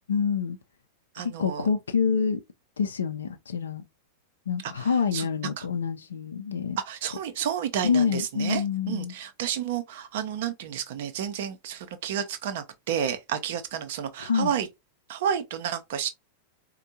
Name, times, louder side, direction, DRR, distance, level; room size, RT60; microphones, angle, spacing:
voice 1, 0.1-0.6 1.2-2.4 2.8-3.8 4.5-6.8 7.8-9.1 14.2-14.5, left 6 dB, 70° left, 0.5 m, -27 dB
voice 2, 1.1-1.7 4.6-5.3 5.6-5.7 6.9-14.7 15.1-16.1, right 8 dB, 55° right, 0.6 m, -31 dB
4.3 x 2.2 x 2.7 m
figure-of-eight pair, 90°, 0 cm